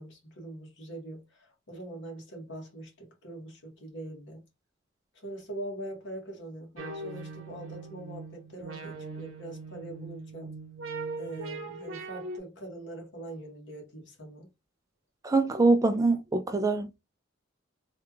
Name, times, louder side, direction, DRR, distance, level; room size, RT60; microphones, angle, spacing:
voice 1, 0.0-4.4 5.1-10.5 11.2-14.5, right 1 dB, 60° left, 1.5 m, -42 dB
sound 1, 6.8-12.4, right 3 dB, 85° right, 0.8 m, -40 dB
voice 2, 15.2-16.9, right 3 dB, 15° right, 0.3 m, -24 dB
3.3 x 2.4 x 3.0 m
head